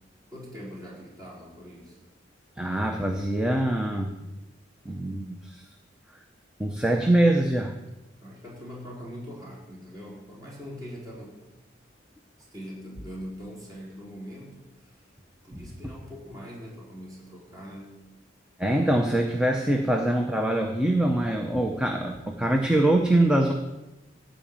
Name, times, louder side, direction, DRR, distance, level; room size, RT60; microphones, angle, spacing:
voice 1, 0.3-2.0 8.2-11.4 12.4-15.0 15.4-18.0, equal, 20° right, -5 dB, 4.4 m, -42 dB
voice 2, 2.6-4.2 4.8-5.6 6.6-7.7 15.5-15.6 18.6-23.5, right 1 dB, 5° right, 2 dB, 0.8 m, -24 dB
15.0 x 5.1 x 8.8 m, 1.0 s
head